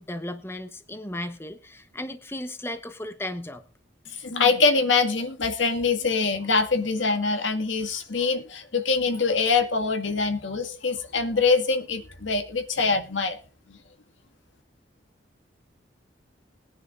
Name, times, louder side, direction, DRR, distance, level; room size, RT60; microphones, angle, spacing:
voice 1, 0.0-3.6, left 1 dB, 15° left, 9 dB, 0.9 m, -35 dB
voice 2, 4.1-13.4 13.7-13.8, left 4 dB, 80° left, 6 dB, 1.9 m, -24 dB
21.0 x 9.9 x 2.5 m, 0.36 s
head